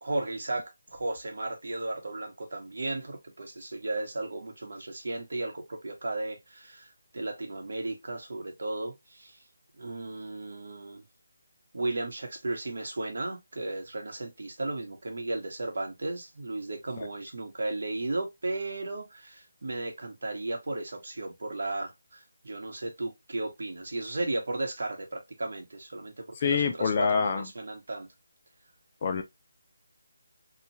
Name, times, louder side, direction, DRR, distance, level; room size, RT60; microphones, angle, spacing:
voice 1, 0.0-9.4 9.8-11.0 11.7-28.1, right 2 dB, 65° right, 1.0 m, -35 dB
voice 2, 26.3-27.5 29.0-29.2, left 6 dB, 30° left, 0.3 m, -26 dB
2.8 x 2.3 x 2.8 m
figure-of-eight pair, 175°, 0 cm